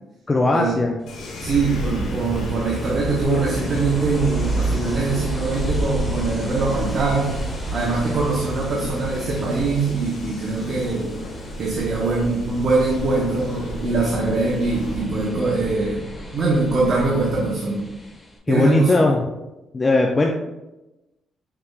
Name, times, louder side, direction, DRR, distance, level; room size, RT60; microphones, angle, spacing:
voice 1, 0.3-1.0 18.5-19.2 19.7-20.3, left 2 dB, 25° left, 1 dB, 0.4 m, -18 dB
Ocean, 1.0-18.4, left 1 dB, 10° left, 1.2 m, -37 dB
sound 1, 1.1-15.0, left 2 dB, 90° left, 1.2 m, -37 dB
sound 2, 1.4-17.3, right 2 dB, 15° right, 1.3 m, -31 dB
voice 2, 1.4-7.3 7.7-11.1 11.6-16.0 16.3-17.8 18.5-18.9, right 3 dB, 50° right, -3 dB, 0.9 m, -22 dB
5.9 x 3.3 x 2.3 m, 1.0 s
cardioid pair, 90°, 0 cm